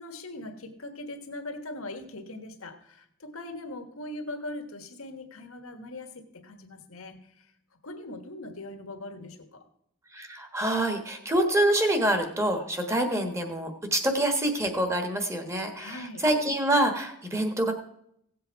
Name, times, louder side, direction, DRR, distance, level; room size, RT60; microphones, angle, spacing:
voice 1, 0.0-7.5 7.8-9.6 15.8-16.2, left 2 dB, 80° left, 6 dB, 1.4 m, -40 dB
voice 2, 10.1-17.7, right 1 dB, 15° right, 5 dB, 1.3 m, -26 dB
16.5 x 7.7 x 4.6 m, 0.73 s
head